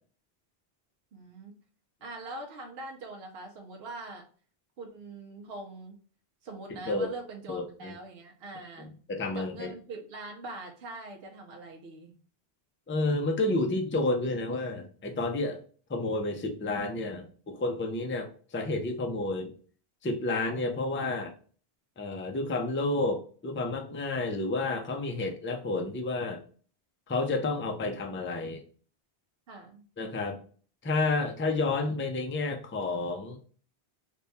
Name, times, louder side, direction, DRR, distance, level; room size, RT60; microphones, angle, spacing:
voice 1, 1.1-1.5 2.0-4.2 4.8-6.0 6.4-8.9 9.3-12.1 29.5-29.8, right 2 dB, 75° right, 1 dB, 0.9 m, -43 dB
voice 2, 6.7-7.1 7.5-7.9 8.8-9.7 12.9-15.6 15.9-19.5 20.0-21.3 22.0-26.4 27.1-28.6 30.0-30.4 30.8-33.4, left 2 dB, 20° left, 4 dB, 0.4 m, -30 dB
3.5 x 2.2 x 4.0 m, 0.42 s
omnidirectional pair, 1.0 m